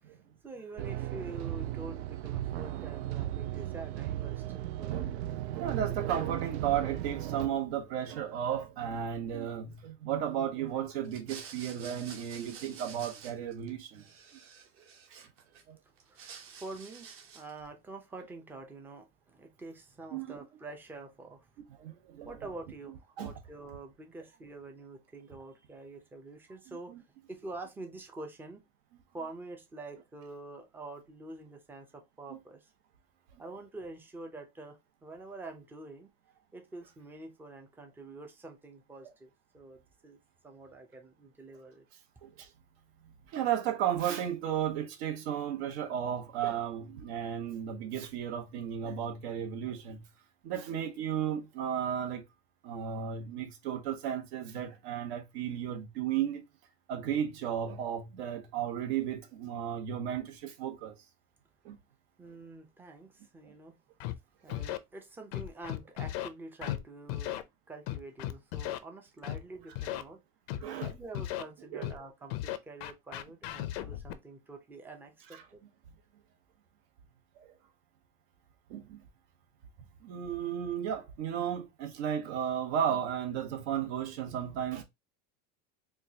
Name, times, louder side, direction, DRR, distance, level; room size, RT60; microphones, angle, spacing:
voice 1, 0.0-5.0 16.0-17.1 17.3-21.5 22.2-26.9 27.3-28.6 29.1-32.7 33.4-36.1 36.5-40.2 40.4-41.8 60.1-60.2 62.2-63.8 64.4-67.4 67.7-70.2 70.8-75.6, right 2 dB, 5° right, 0.5 m, -46 dB
sound 1, 0.8-7.5, right 13 dB, 90° right, 0.5 m, -36 dB
voice 2, 4.9-5.3 5.5-14.0 15.7-15.8 20.1-20.4 21.8-22.3 23.2-23.3 26.7-27.0 42.2-42.5 43.3-50.0 50.4-52.2 52.6-56.4 56.9-61.0 61.6-61.8 63.4-63.5 64.5-64.6 70.6-70.9 71.7-71.8 77.4-77.5 78.7-79.0 80.0-84.8, right 9 dB, 70° right, 1.1 m, -34 dB
sound 2, 11.0-13.7 13.9-15.6 16.0-17.6, right 6 dB, 40° right, 1.0 m, -49 dB
Scratching (performance technique), 64.0-64.1 64.5-64.8 65.3-66.3 66.6-66.8 67.1-67.4 67.9-68.8 69.2-69.4 69.8-70.0 70.5-71.4 71.8-72.0 72.3-74.1, left 14 dB, 70° left, 0.6 m, -36 dB
4.5 x 2.3 x 2.7 m
supercardioid pair, 155°, 32 cm